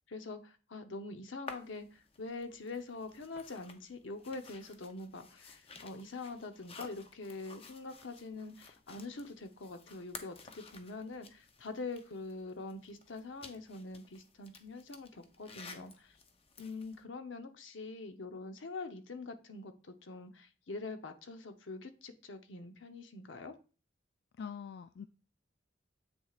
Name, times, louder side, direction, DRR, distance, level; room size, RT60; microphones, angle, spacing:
voice 1, 0.1-16.2 16.6-23.6, left 3 dB, 80° left, 7 dB, 0.8 m, -44 dB
sound 1, 1.5-17.0, left 4 dB, 30° left, 0.6 m, -54 dB
voice 2, 24.4-25.1, left 6 dB, 60° left, 10 dB, 0.3 m, -43 dB
8.1 x 6.2 x 2.4 m, 0.36 s
head